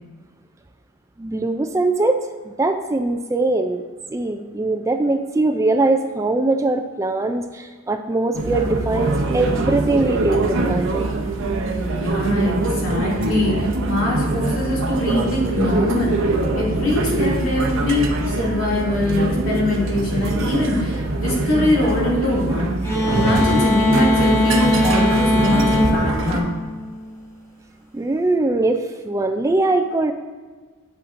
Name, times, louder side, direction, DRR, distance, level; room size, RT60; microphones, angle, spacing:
voice 1, 1.2-11.1 27.9-30.1, right 2 dB, 15° right, 6 dB, 0.3 m, -21 dB
sound 1, 8.3-26.4, right 2 dB, 65° right, 0.7 m, -23 dB
voice 2, 11.9-16.2 16.5-22.8 23.1-26.5, left 2 dB, 65° left, -5 dB, 2.5 m, -23 dB
sound 2, 22.8-27.3, equal, 15° left, 1.1 m, -20 dB
8.5 x 8.0 x 2.6 m, 1.4 s
head